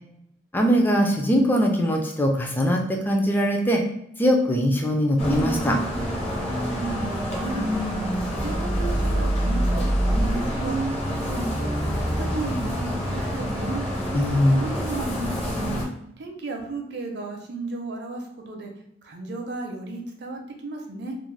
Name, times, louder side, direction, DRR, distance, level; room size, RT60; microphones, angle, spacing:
voice 1, 0.5-3.8 4.2-5.8 14.1-14.7, equal, 10° left, 1 dB, 0.4 m, -21 dB
sound 1, 5.2-15.8, equal, 35° left, 0.8 m, -26 dB
voice 2, 6.7-7.7 8.2-10.8 11.1-13.8 14.6-15.8 16.2-18.7 19.0-21.2, right 2 dB, 65° right, 2 dB, 0.5 m, -34 dB
2.5 x 2.0 x 3.1 m, 0.78 s
head